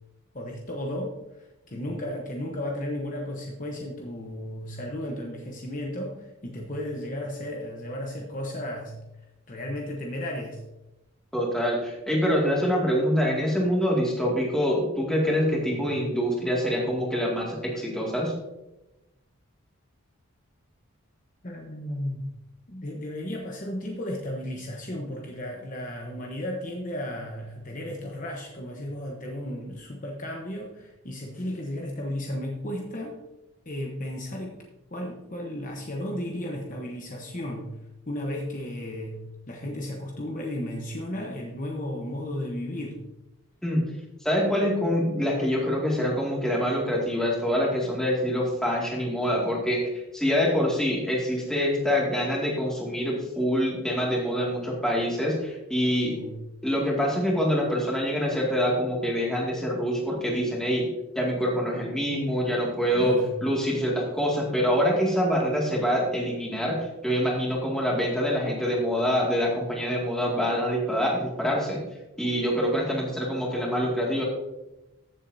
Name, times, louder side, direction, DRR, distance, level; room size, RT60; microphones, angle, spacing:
voice 1, 0.3-9.0 9.5-10.6 15.6-15.9 21.4-22.3 22.7-33.2 33.7-34.5 34.9-37.8 38.1-43.0 56.1-56.4 62.9-63.4, left 1 dB, 35° left, 0 dB, 1.0 m, -34 dB
voice 2, 11.3-18.3 43.6-43.9 44.2-56.1 56.6-60.9 61.2-63.1 63.4-71.8 72.2-74.2, equal, 5° left, -3 dB, 2.1 m, -25 dB
14.5 x 7.3 x 2.7 m, 0.96 s
head